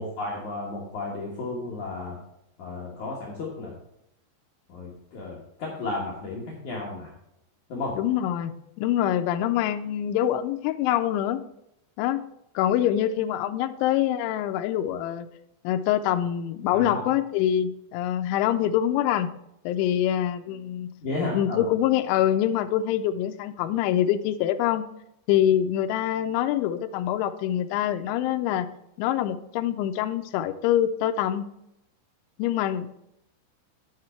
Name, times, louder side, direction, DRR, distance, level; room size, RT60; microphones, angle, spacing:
voice 1, 0.0-2.2 2.6-3.7 4.7-7.1 7.7-8.0 16.7-17.0 21.0-21.7, left 2 dB, 65° left, -4 dB, 1.9 m, -33 dB
voice 2, 8.0-11.4 12.0-12.2 12.6-15.3 15.6-19.3 19.7-20.9 21.3-24.9 25.3-28.7 29.0-31.4 32.4-32.9, left 11 dB, 85° left, 8 dB, 2.8 m, -25 dB
9.5 x 6.6 x 4.3 m, 0.82 s
omnidirectional pair, 5.5 m